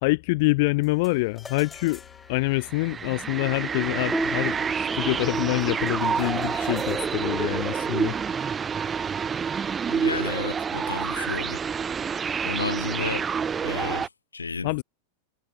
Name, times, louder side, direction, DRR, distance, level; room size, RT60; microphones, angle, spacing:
voice 1, 0.0-2.0 2.3-8.1 14.6-14.8, left 24 dB, 50° left, 0.6 m, -26 dB
sound 1, 0.8-10.3, left 5 dB, 15° left, 3.5 m, -51 dB
sound 2, 2.5-14.1, right 6 dB, 20° right, 0.5 m, -28 dB
Piano, 4.1-14.0, right 1 dB, ahead, 0.9 m, -38 dB
voice 2, 9.9-11.6 12.4-13.3 13.6-14.7, left 4 dB, 75° left, 1.1 m, -32 dB
figure-of-eight pair, 90°, 0 cm